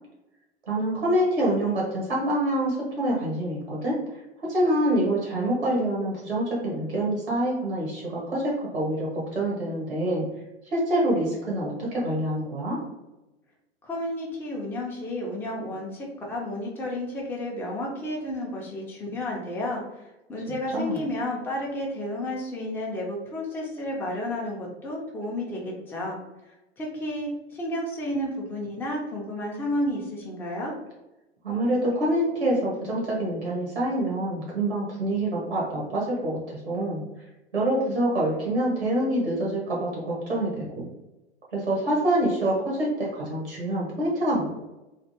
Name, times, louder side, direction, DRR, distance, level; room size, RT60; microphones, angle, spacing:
voice 1, 0.7-4.0 4.4-10.2 10.7-12.8 20.7-21.0 31.4-37.0 37.5-40.9 41.5-44.5, right 1 dB, 85° right, -4 dB, 1.1 m, -26 dB
voice 2, 13.8-26.2 26.8-30.7, left 1 dB, 5° left, -3 dB, 0.5 m, -31 dB
3.3 x 2.5 x 2.7 m, 0.99 s
figure-of-eight pair, 90°, 32 cm